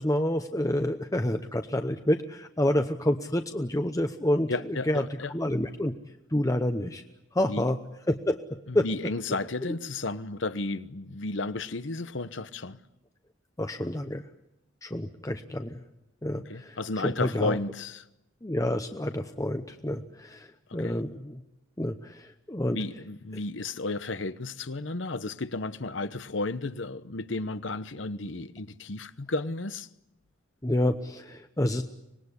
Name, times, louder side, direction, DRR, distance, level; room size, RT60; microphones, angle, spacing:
voice 1, 0.0-4.5 4.9-5.0 5.3-5.9 6.3-7.0 7.3-7.8 8.1-8.4 8.7-8.9 9.6-9.7 13.6-14.2 14.8-15.7 16.2-17.6 18.4-20.5 20.7-21.4 21.8-22.8 30.6-31.8, left 1 dB, 15° left, 0.9 m, -28 dB
voice 2, 4.5-5.3 7.4-7.7 8.7-12.8 16.5-18.0 20.7-21.0 22.7-29.9, left 3 dB, 75° left, 1.0 m, -33 dB
25.5 x 20.0 x 9.8 m
head